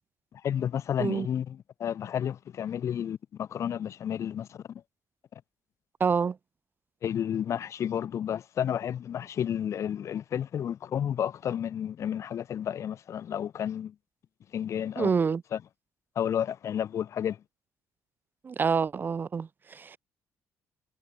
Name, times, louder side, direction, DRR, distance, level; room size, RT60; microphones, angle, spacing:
voice 1, 0.4-4.8 7.0-13.9 14.5-15.1 15.5-15.6 16.2-17.4, left 9 dB, 50° left, 0.7 m, -31 dB
voice 2, 6.0-6.4 15.0-15.4 18.4-20.0, right 5 dB, 30° right, 0.6 m, -27 dB
cardioid pair, 110°, 6 cm